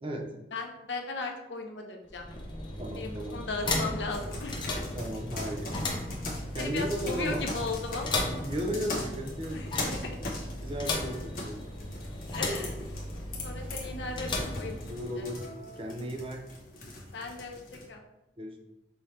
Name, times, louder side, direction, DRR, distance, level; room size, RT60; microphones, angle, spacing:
voice 1, 0.5-2.3 3.0-4.8 6.6-8.3 9.5-10.3 12.3-12.8 13.4-15.3 17.1-17.6 17.9-18.0, left 3 dB, 90° left, 3 dB, 0.7 m, -37 dB
sound 1, 2.0-15.3, left 2 dB, 25° left, 0.6 m, -36 dB
voice 2, 2.8-3.4 4.9-5.8 6.5-7.5 8.4-9.6 10.6-11.6 14.9-15.5 15.8-16.4 18.4-18.6, equal, 30° right, 3 dB, 0.5 m, -35 dB
sound 2, 4.1-17.9, left 2 dB, 50° left, 1.0 m, -41 dB
5.6 x 2.8 x 3.2 m, 0.91 s
head